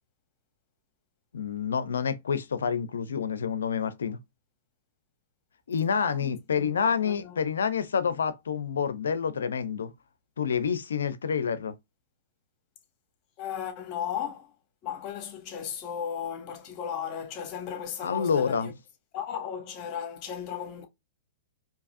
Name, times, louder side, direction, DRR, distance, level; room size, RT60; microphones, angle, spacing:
voice 1, 1.3-4.2 5.7-9.9 10.4-11.7 18.0-18.7, left 6 dB, 80° left, 0.7 m, -28 dB
voice 2, 6.0-7.4 13.4-14.5 14.8-18.7 19.1-20.9, left 8 dB, 40° left, 1.5 m, -36 dB
4.7 x 2.9 x 2.5 m
hypercardioid pair, 120°, 0 cm